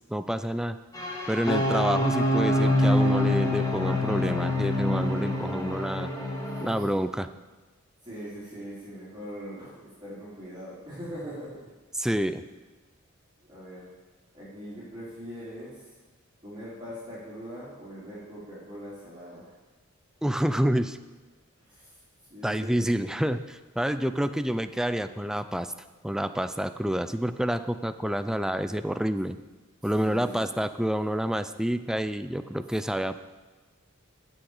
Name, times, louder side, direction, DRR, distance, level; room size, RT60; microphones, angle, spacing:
voice 1, 0.1-0.8 1.3-6.1 6.6-7.3 11.9-12.4 20.2-21.0 22.4-25.7 26.0-29.4 29.8-33.2, equal, 5° right, 11 dB, 0.3 m, -28 dB
sound 1, 0.9-6.7, left 1 dB, 15° left, 1.9 m, -25 dB
voice 2, 6.3-6.8 8.0-11.7 13.5-13.9 14.3-15.9 16.4-19.5 20.6-20.8 21.6-21.9 22.3-22.8 30.0-30.7, equal, 20° right, -10 dB, 3.6 m, -41 dB
15.5 x 6.3 x 4.9 m, 1.3 s
head